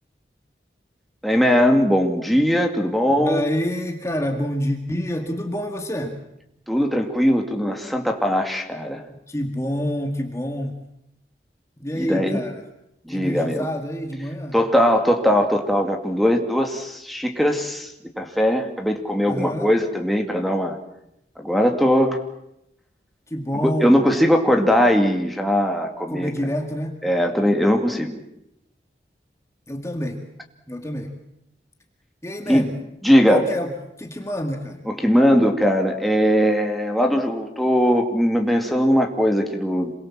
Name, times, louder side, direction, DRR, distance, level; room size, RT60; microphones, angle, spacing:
voice 1, 1.2-3.4 6.7-9.0 12.0-12.4 13.1-13.7 14.5-17.9 18.2-20.8 21.4-22.2 23.6-26.3 27.0-28.2 32.5-32.7 33.0-33.5 34.9-39.9, equal, ahead, 2 dB, 2.4 m, -20 dB
voice 2, 3.1-6.2 9.3-10.8 11.8-12.6 13.1-14.6 19.2-19.7 23.3-24.0 26.1-27.0 29.7-30.3 30.7-31.1 32.2-32.8 33.3-34.8, equal, 15° left, 3 dB, 2.0 m, -27 dB
27.5 x 22.5 x 7.5 m, 0.83 s
head